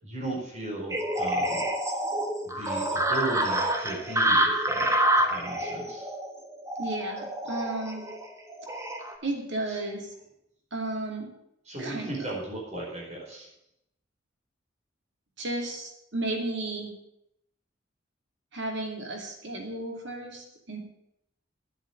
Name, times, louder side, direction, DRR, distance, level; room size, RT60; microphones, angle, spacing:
voice 1, 0.0-1.6 2.6-4.9 5.3-6.0 9.7-9.8 11.6-13.5, right 2 dB, 35° right, -4 dB, 4.7 m, -36 dB
sound 1, 0.9-9.1, right 1 dB, 15° right, 1.3 m, -27 dB
voice 2, 6.8-8.1 9.2-10.1 10.7-11.3 11.8-12.1 15.4-16.9 18.5-20.8, right 2 dB, 65° right, 2 dB, 2.6 m, -33 dB
10.5 x 7.9 x 8.5 m, 0.80 s
head